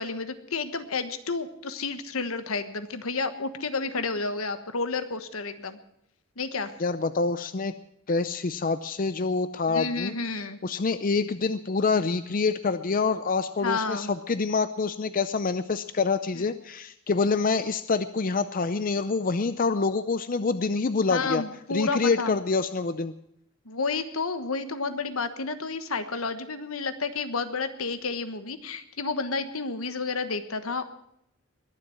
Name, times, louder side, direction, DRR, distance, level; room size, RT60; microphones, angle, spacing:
voice 1, 0.0-5.8 6.4-6.7 9.7-10.6 13.6-14.1 16.3-16.5 21.1-22.4 23.6-30.8, left 4 dB, 80° left, 10 dB, 1.3 m, -31 dB
voice 2, 6.8-7.7 8.1-10.2 10.6-21.4 21.7-23.1, left 4 dB, 40° left, 12 dB, 0.5 m, -26 dB
21.5 x 7.6 x 7.7 m, 0.76 s
head